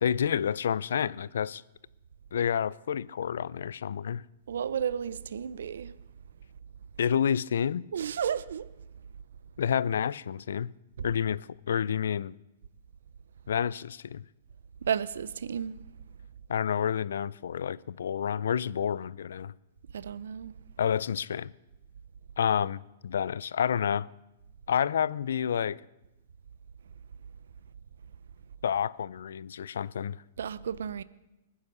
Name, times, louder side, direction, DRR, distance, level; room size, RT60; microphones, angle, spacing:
voice 1, 0.0-1.6 2.3-4.2 7.0-7.8 9.6-10.7 11.0-12.3 13.5-14.2 16.5-19.5 20.8-21.5 22.4-24.1 24.7-25.8 28.6-30.2, left 8 dB, 85° left, 0.4 m, -29 dB
voice 2, 4.5-5.9 7.9-8.7 14.9-15.8 19.9-20.5 30.4-31.0, right 8 dB, 85° right, 0.6 m, -32 dB
21.0 x 9.7 x 6.7 m
hypercardioid pair, 155°, 0 cm